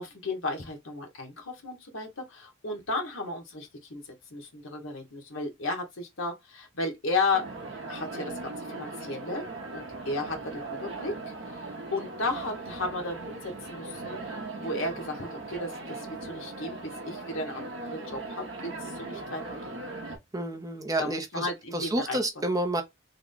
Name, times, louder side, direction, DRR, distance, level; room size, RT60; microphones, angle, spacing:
voice 1, 0.0-7.5 7.9-9.4 9.7-11.2 11.5-19.8 21.0-22.2, left 2 dB, 70° left, 1.3 m, -34 dB
sound 1, 7.3-20.2, right 2 dB, 60° right, 0.8 m, -39 dB
voice 2, 20.3-22.8, right 1 dB, 15° right, 0.6 m, -30 dB
3.5 x 2.2 x 3.7 m
head